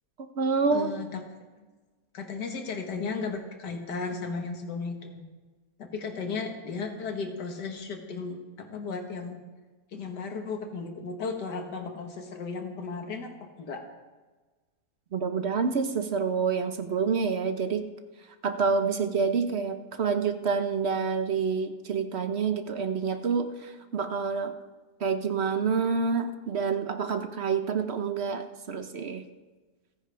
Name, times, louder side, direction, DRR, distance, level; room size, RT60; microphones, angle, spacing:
voice 1, 0.2-0.9 15.1-17.9 18.4-24.5 25.0-29.2, right 5 dB, 50° right, 8 dB, 1.0 m, -28 dB
voice 2, 0.7-1.2 2.1-5.3 5.8-9.4 9.9-13.8, left 4 dB, 85° left, 3 dB, 2.0 m, -35 dB
29.0 x 10.0 x 3.4 m, 1.3 s
omnidirectional pair, 1.7 m